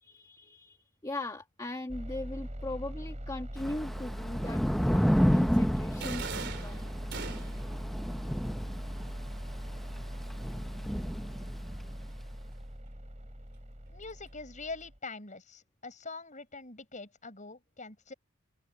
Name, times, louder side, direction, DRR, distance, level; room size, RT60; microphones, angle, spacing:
voice 1, 0.0-6.9, left 1 dB, 15° left, 1.6 m, -39 dB
sound 1, 1.9-15.0, equal, 35° right, 7.1 m, -40 dB
Thunder / Rain, 3.6-11.9, equal, ahead, 0.6 m, -31 dB
sound 2, 6.0-7.8, right 5 dB, 55° right, 3.6 m, -40 dB
voice 2, 13.9-18.1, left 3 dB, 35° left, 7.4 m, -44 dB
open air
head